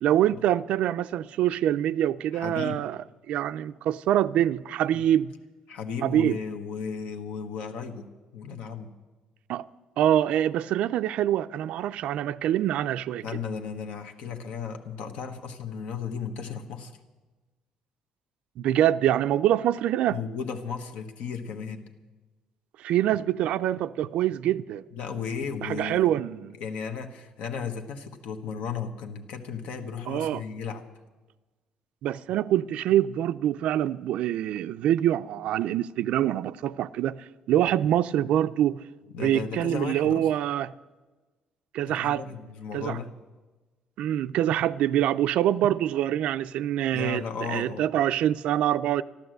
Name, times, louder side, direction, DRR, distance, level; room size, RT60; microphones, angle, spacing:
voice 1, 0.0-3.0 3.3-5.3 6.0-6.4 9.5-9.6 10.0-13.2 18.6-20.2 22.8-24.8 25.6-26.5 30.1-30.4 32.0-38.8 39.2-40.7 41.7-42.2 42.7-43.0 44.0-47.2 47.5-49.0, right 11 dB, 65° right, 0.4 m, -25 dB
voice 2, 2.3-2.8 4.9-5.0 5.7-8.9 13.2-17.0 20.1-21.9 24.9-26.1 26.6-30.9 39.1-40.3 41.9-43.1 46.9-47.9, left 6 dB, 70° left, 1.3 m, -35 dB
13.5 x 12.0 x 7.9 m
cardioid pair, 170°, 2 cm